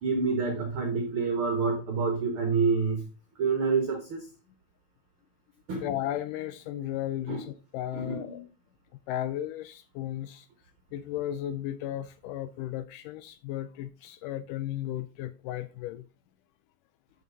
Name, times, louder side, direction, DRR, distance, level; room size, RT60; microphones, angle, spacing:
voice 1, 0.0-3.1 3.4-4.2 5.7-5.9 7.3-7.4 7.9-8.4, right 4 dB, 60° right, 1.4 m, -28 dB
voice 2, 5.8-8.4 9.1-10.5 10.9-16.1, left 12 dB, 90° left, 1.8 m, -35 dB
12.5 x 5.8 x 3.9 m
omnidirectional pair, 4.3 m